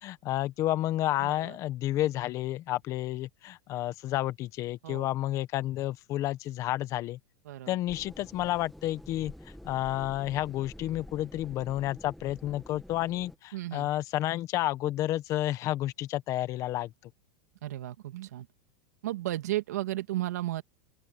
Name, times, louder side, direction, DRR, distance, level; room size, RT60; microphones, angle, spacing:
voice 1, 0.0-7.2 7.7-9.3 9.6-16.9, left 14 dB, 40° left, 1.5 m, -30 dB
voice 2, 1.2-1.6 4.8-5.1 7.4-7.8 13.5-13.9 17.6-18.5 19.0-20.6, right 15 dB, 85° right, 2.6 m, -34 dB
sound 1, 7.9-13.4, equal, ahead, 2.3 m, -48 dB
open air
supercardioid pair, 145°, 9 cm